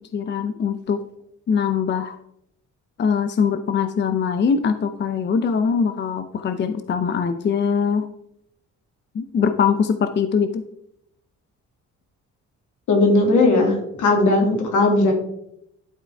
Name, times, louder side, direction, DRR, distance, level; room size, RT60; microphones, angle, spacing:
voice 1, 0.1-1.0 1.5-2.2 3.0-8.1 9.1-10.6, left 6 dB, 35° left, 10 dB, 0.5 m, -22 dB
voice 2, 12.9-15.1, left 2 dB, 80° left, 1 dB, 2.3 m, -17 dB
11.0 x 4.5 x 3.4 m, 0.76 s
cardioid pair, 90°, 30 cm